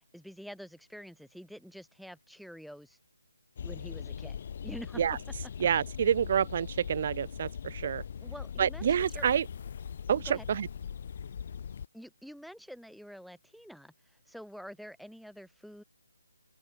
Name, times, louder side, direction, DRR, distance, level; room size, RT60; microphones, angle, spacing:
voice 1, 0.1-3.0 3.6-4.4 4.6-5.0 5.4-5.5 8.2-9.3 10.2-10.5 11.9-13.9 14.3-15.8, equal, ahead, 1.1 m, -47 dB
sound 1, 3.6-11.9, left 7 dB, 45° left, 1.5 m, -40 dB
voice 2, 5.6-8.0 8.6-9.5 10.1-10.7, right 8 dB, 40° right, 0.3 m, -28 dB
figure-of-eight pair, 155°, 0 cm